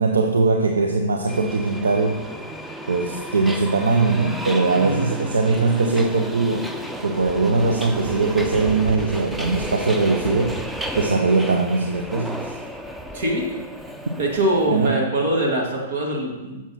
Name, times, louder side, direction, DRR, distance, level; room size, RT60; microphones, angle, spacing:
voice 1, 0.0-2.2 2.9-6.7 7.0-10.6 10.9-12.5 14.7-15.1, right 3 dB, 80° right, 3 dB, 0.6 m, -21 dB
Subway metro underground, 1.3-14.9, right 1 dB, 5° right, 0.6 m, -32 dB
voice 2, 4.7-5.1 13.1-13.6 14.2-16.6, right 1 dB, 60° right, 0 dB, 1.9 m, -23 dB
7.3 x 5.9 x 4.1 m, 1.1 s
hypercardioid pair, 110°, 0 cm